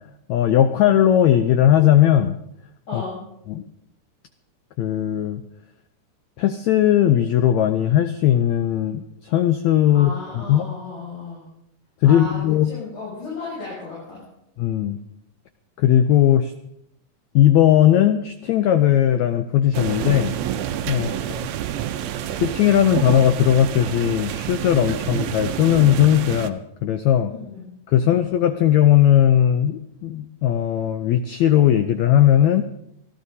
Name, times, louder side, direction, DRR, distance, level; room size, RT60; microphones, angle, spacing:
voice 1, 0.3-2.4 2.9-3.0 3.5-3.6 4.8-5.4 6.4-10.6 12.0-12.7 14.6-15.0 15.8-16.5 17.3-20.4 20.9-21.4 22.3-27.3 27.9-32.6, left 11 dB, 80° left, 9 dB, 1.6 m, -18 dB
voice 2, 2.9-3.2 9.9-11.5 12.0-14.2 20.9-21.3 27.3-27.7, left 3 dB, 60° left, -9 dB, 9.0 m, -35 dB
sound 1, 19.7-26.5, right 10 dB, 85° right, 1.5 m, -28 dB
26.0 x 13.5 x 2.8 m, 0.79 s
omnidirectional pair, 3.9 m